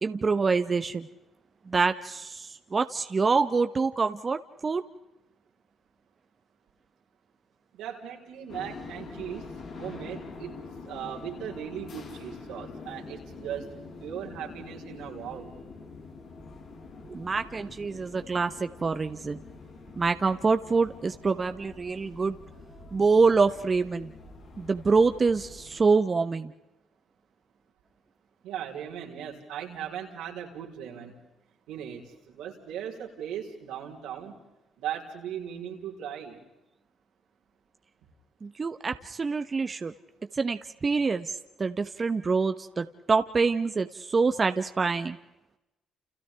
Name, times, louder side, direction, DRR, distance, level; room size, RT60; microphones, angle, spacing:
voice 1, 0.0-1.1 1.7-4.8 17.0-19.4 20.0-22.4 22.9-24.1 24.6-26.5 38.4-39.9 40.3-45.2, right 4 dB, 35° right, 8 dB, 1.1 m, -26 dB
voice 2, 7.7-13.7 14.0-15.5 28.4-31.1 31.7-34.3 34.8-36.4, right 9 dB, 85° right, -2 dB, 4.1 m, -38 dB
sound 1, 8.5-25.8, left 4 dB, 75° left, 7.7 m, -45 dB
29.5 x 29.5 x 3.5 m, 0.95 s
supercardioid pair, 65°, 0 cm